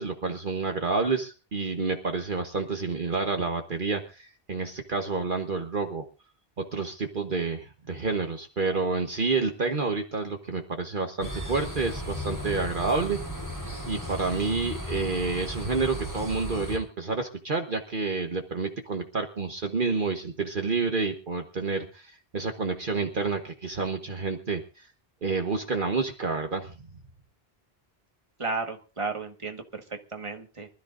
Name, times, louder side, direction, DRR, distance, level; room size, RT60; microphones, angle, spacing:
voice 1, 0.0-6.0 6.7-13.2 13.8-24.9 25.2-26.7, right 4 dB, 55° right, 4 dB, 1.4 m, -29 dB
sound 1, 11.2-16.8, left 1 dB, 15° left, 4.5 m, -35 dB
voice 2, 28.4-30.7, right 4 dB, 30° right, 4 dB, 1.6 m, -34 dB
24.5 x 13.0 x 2.6 m, 0.34 s
omnidirectional pair, 1.1 m